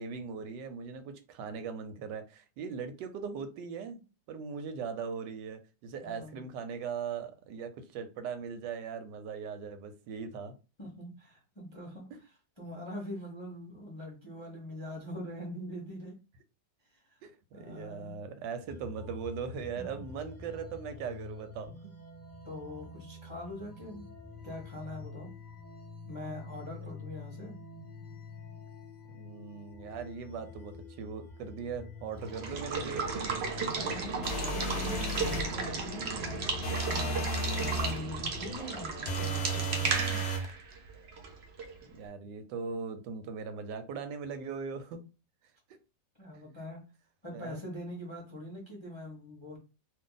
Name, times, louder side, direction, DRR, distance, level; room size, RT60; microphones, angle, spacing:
voice 1, 0.0-4.0 4.3-10.5 17.2-21.9 29.1-33.3 37.0-37.2 41.9-45.0 47.3-47.6, right 6 dB, 85° right, 9 dB, 1.2 m, -39 dB
voice 2, 6.0-6.5 10.8-12.1 12.6-16.2 16.9-17.2 17.5-18.2 19.7-19.8 22.4-24.0 24.4-25.3 26.0-27.6 33.6-40.3 46.2-46.8 47.2-49.6, left 1 dB, 30° left, -1 dB, 0.5 m, -43 dB
sound 1, 18.7-38.6, left 4 dB, 15° right, 1.1 m, -47 dB
Water / Water tap faucet / Liquid, 32.2-41.8, right 4 dB, 65° right, 0.6 m, -34 dB
sound 2, 34.2-35.5 36.6-38.0 39.1-40.5, right 2 dB, 80° left, 0.5 m, -33 dB
2.6 x 2.5 x 3.8 m, 0.31 s
omnidirectional pair, 1.9 m